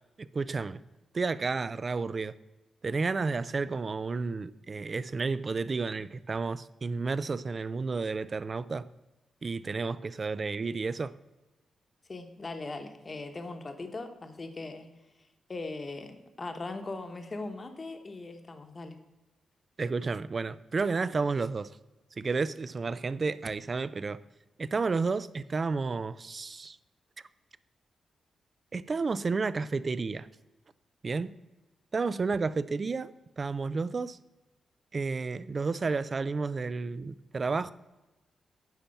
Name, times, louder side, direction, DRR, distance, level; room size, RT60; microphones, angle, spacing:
voice 1, 0.2-0.8 1.1-2.3 2.8-8.9 9.4-11.1 19.8-21.7 22.2-24.2 24.6-26.8 28.7-30.3 31.0-31.4 31.9-34.2 34.9-37.7, right 4 dB, 30° right, 16 dB, 0.3 m, -31 dB
voice 2, 12.1-14.9 15.5-19.0, left 3 dB, 25° left, 6 dB, 1.0 m, -39 dB
10.5 x 4.4 x 6.9 m, 1.1 s
wide cardioid pair, 160°, 0 cm